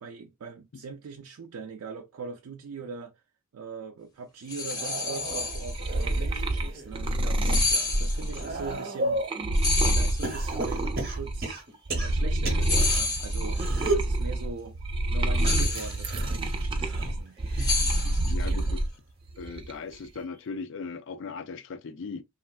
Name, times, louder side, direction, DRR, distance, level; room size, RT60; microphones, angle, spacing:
voice 1, 0.0-3.1 3.5-9.2 9.8-11.6 12.0-13.6 13.9-14.8 15.1-17.4 17.9-18.7, right 4 dB, 90° right, 0.4 m, -41 dB
sound 1, 4.5-6.0 7.4-8.5 9.5-10.7 12.6-13.7 15.4-16.4 17.6-18.6, left 3 dB, 15° left, 0.6 m, -30 dB
sound 2, 4.6-6.9 7.4-9.4 10.2-13.0 13.5-14.1 15.3-18.2 18.6-19.0 20.2-20.3, right 2 dB, 45° right, 0.9 m, -34 dB
sound 3, 5.3-11.5 11.9-18.9 19.3-19.9, right 1 dB, 25° right, 0.4 m, -28 dB
voice 2, 18.3-18.8 19.4-22.2, left 4 dB, 55° left, 0.4 m, -38 dB
3.1 x 2.5 x 2.2 m
head